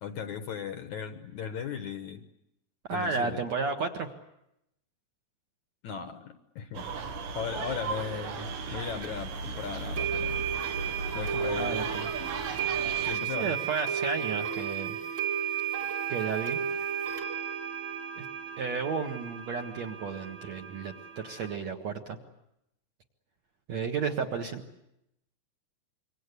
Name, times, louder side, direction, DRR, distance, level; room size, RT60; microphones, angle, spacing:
voice 1, 0.0-2.3 2.9-3.4 5.8-6.9 7.4-10.4 11.1-11.9 13.0-13.6, left 7 dB, 70° left, 8 dB, 1.8 m, -37 dB
voice 2, 2.9-4.1 11.5-12.1 13.0-15.0 16.1-16.6 18.2-18.3 18.6-22.2 23.7-24.6, right 5 dB, 60° right, 3 dB, 2.0 m, -33 dB
sound 1, 6.7-13.1, right 4 dB, 85° right, 4.3 m, -36 dB
sound 2, 9.0-9.1 10.0-21.5, right 8 dB, 35° right, 2.0 m, -33 dB
27.0 x 24.5 x 8.2 m, 0.82 s
omnidirectional pair, 5.0 m